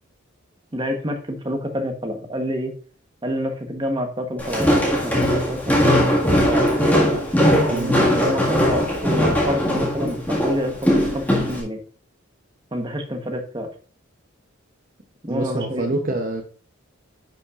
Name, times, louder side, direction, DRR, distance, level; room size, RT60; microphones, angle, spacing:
voice 1, 0.7-2.7 3.2-4.7 5.0-6.1 6.4-6.6 7.6-11.8 12.7-13.7 15.2-15.9, equal, 25° right, 4 dB, 1.0 m, -28 dB
Walk footsteps, 4.4-11.6, equal, 10° left, 1.7 m, -19 dB
voice 2, 7.7-8.0 15.3-16.4, right 2 dB, 40° right, 3 dB, 0.7 m, -26 dB
10.5 x 5.5 x 2.4 m, 0.42 s
head